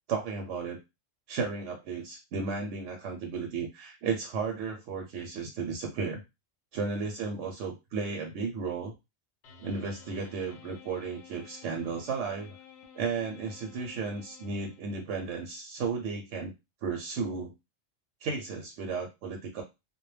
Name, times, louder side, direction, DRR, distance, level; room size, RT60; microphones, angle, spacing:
voice 1, 0.1-0.8 1.3-6.2 6.7-8.9 9.6-12.6 13.0-16.5 16.8-17.5 18.2-19.6, right 5 dB, 70° right, 1 dB, 0.8 m, -34 dB
sound 1, 9.4-15.2, left 7 dB, 65° left, 0.8 m, -53 dB
2.1 x 2.1 x 3.1 m, 0.24 s
omnidirectional pair, 1.3 m